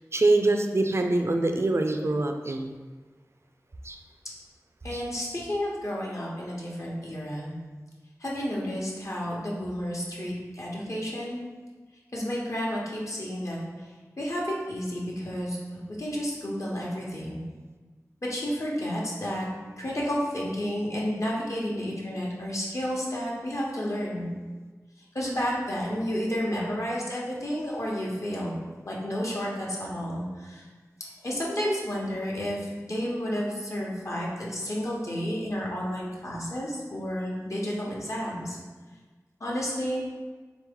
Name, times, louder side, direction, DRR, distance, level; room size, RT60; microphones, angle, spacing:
voice 1, 0.1-2.8 3.8-4.0 4.9-5.0, right 2 dB, 50° right, 4 dB, 0.4 m, -24 dB
voice 2, 4.8-7.5 8.2-11.4 12.1-13.9 14.2-17.4 18.2-24.3 25.0-28.6 28.8-30.7 31.0-38.6 39.4-40.0, equal, 60° left, -4 dB, 1.0 m, -31 dB
3.8 x 3.0 x 3.6 m, 1.4 s
wide cardioid pair, 45°, 6 cm